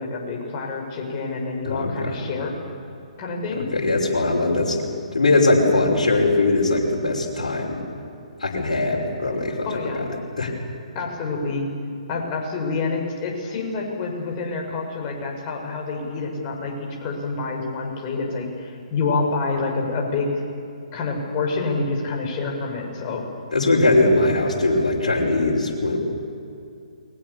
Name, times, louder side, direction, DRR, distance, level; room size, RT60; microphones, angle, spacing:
voice 1, 0.0-2.5 3.2-3.7 9.6-10.1 10.9-11.7 12.1-20.4 20.9-23.3, left 3 dB, 30° left, 0 dB, 6.2 m, -27 dB
voice 2, 1.7-2.2 3.7-4.8 5.1-7.8 8.4-10.5 23.5-26.0, left 2 dB, 75° left, -3 dB, 5.5 m, -21 dB
29.0 x 22.0 x 7.1 m, 2.4 s
figure-of-eight pair, 135°, 4 cm